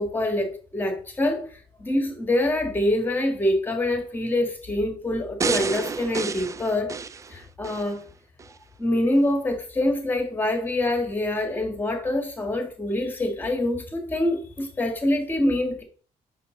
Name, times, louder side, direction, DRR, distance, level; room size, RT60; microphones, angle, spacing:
voice 1, 0.0-1.5 1.8-6.9 7.3-8.0 8.8-15.8, left 1 dB, 15° left, 1.8 m, -25 dB
sound 1, 5.4-7.9 8.4-8.5, right 5 dB, 20° right, 0.3 m, -30 dB
7.5 x 6.1 x 3.9 m
cardioid pair, 155°, 15 cm